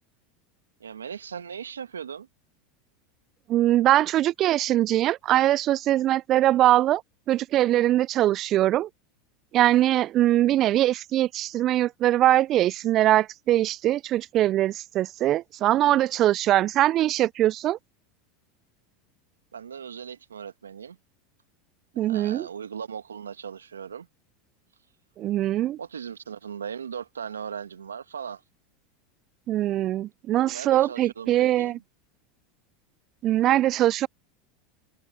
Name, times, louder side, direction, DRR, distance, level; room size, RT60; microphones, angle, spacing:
voice 1, 0.8-2.3 19.5-21.0 22.1-24.1 25.8-28.4 30.5-31.8, right 7 dB, 90° right, 1.5 m, -38 dB
voice 2, 3.5-7.0 7.3-8.9 9.5-17.8 22.0-22.5 25.2-25.8 29.5-31.8 33.2-34.1, right 13 dB, 45° right, 0.4 m, -22 dB
hypercardioid pair, 90°, 0 cm